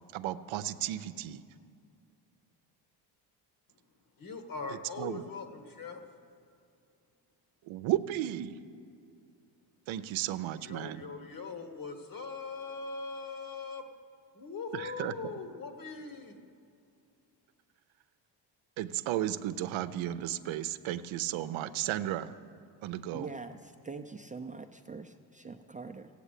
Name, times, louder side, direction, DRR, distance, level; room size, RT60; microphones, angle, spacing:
voice 1, 0.1-1.4 5.0-5.2 7.7-8.6 9.9-11.0 14.7-15.1 18.8-22.4 22.8-23.3, right 13 dB, 85° right, 12 dB, 0.7 m, -34 dB
voice 2, 4.2-6.0 10.6-13.8 14.3-16.4, left 4 dB, 45° left, 6 dB, 1.6 m, -41 dB
voice 3, 23.1-26.1, right 4 dB, 15° right, 4 dB, 0.5 m, -43 dB
16.5 x 8.5 x 8.2 m, 2.4 s
cardioid pair, 105°, 46 cm